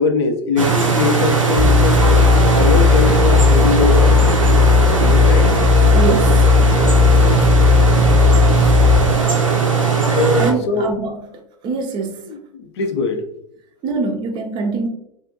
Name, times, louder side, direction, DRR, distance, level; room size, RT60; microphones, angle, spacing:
voice 1, 0.0-2.2 2.5-4.4 5.0-5.5 10.1-10.4 10.7-10.9 12.3-13.2, left 4 dB, 60° left, 6 dB, 0.4 m, -21 dB
sound 1, 0.6-10.5, right 5 dB, 85° right, 0.5 m, -17 dB
sound 2, 1.6-9.1, left 5 dB, 25° left, 0.7 m, -14 dB
voice 2, 5.9-6.5 10.4-12.3 13.8-14.9, right 4 dB, 30° right, 4 dB, 0.4 m, -24 dB
2.4 x 2.4 x 2.5 m, 0.76 s
figure-of-eight pair, 90°, 16 cm